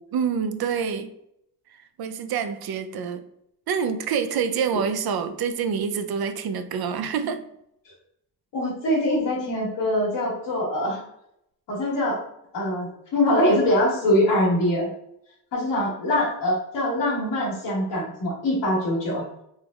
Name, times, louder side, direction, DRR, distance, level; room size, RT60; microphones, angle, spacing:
voice 1, 0.1-1.1 2.0-3.2 3.7-7.4, right 6 dB, 60° right, 0.5 m, -26 dB
voice 2, 8.5-11.0 11.7-12.2 12.5-14.9 15.5-19.2, left 1 dB, 90° left, 1.3 m, -23 dB
3.3 x 2.0 x 3.4 m
cardioid pair, 60°, 42 cm